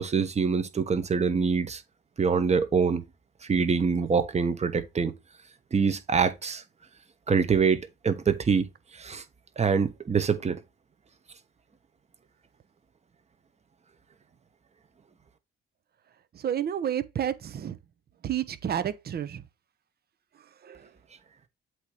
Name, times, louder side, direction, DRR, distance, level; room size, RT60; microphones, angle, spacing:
voice 1, 0.0-1.8 2.2-3.0 3.5-5.1 5.7-6.6 7.3-8.6 9.0-9.2 9.6-10.6, right 5 dB, 35° right, 1.2 m, -25 dB
voice 2, 16.3-17.8 18.2-19.4 20.6-20.8, right 9 dB, 50° right, 0.9 m, -30 dB
8.0 x 3.0 x 4.9 m
cardioid pair, 90°, 20 cm